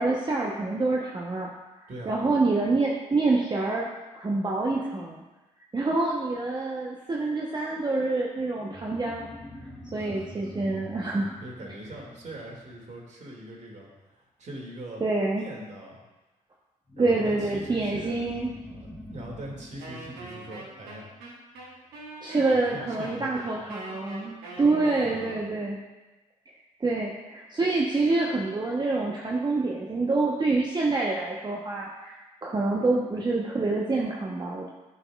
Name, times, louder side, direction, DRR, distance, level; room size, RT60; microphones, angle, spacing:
voice 1, 0.0-1.5 2.1-3.9 4.1-5.2 5.7-9.3 9.9-11.3 15.0-15.5 17.0-18.5 22.2-25.8 26.8-34.7, right 3 dB, 30° right, -2 dB, 0.8 m, -26 dB
voice 2, 1.9-2.2 10.0-10.5 11.1-15.0 15.3-16.0 17.0-18.2 18.6-21.0 22.4-23.6 24.6-25.4, right 1 dB, 50° right, -2 dB, 2.0 m, -42 dB
sound 1, 8.5-13.5 16.9-21.8, equal, 5° left, 1.2 m, -45 dB
Wind instrument woodwind instrument, 19.8-25.6, right 2 dB, 85° right, 1.3 m, -43 dB
9.9 x 4.2 x 2.3 m, 1.1 s
supercardioid pair, 50°, 16 cm